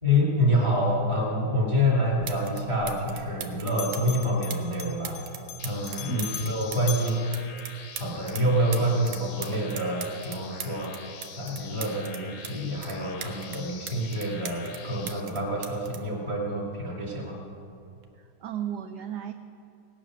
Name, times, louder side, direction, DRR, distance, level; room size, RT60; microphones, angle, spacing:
voice 1, 0.0-5.2 5.6-7.2 8.0-11.1 11.4-17.4, equal, 15° right, -4 dB, 2.1 m, -27 dB
sound 1, 1.8-1.9 2.2-2.6 2.9-8.4 8.7-12.5 12.8-14.8 15.1-16.9 17.8-18.0, right 8 dB, 65° right, 1.5 m, -39 dB
Bell, 2.1-3.4 3.7-8.2, left 12 dB, 75° left, 1.3 m, -41 dB
sound 2, 5.6-15.2, left 5 dB, 60° left, 1.0 m, -44 dB
voice 2, 7.0-7.5 18.2-19.3, right 10 dB, 85° right, 8 dB, 0.9 m, -35 dB
17.5 x 8.8 x 6.2 m, 2.5 s
omnidirectional pair, 2.4 m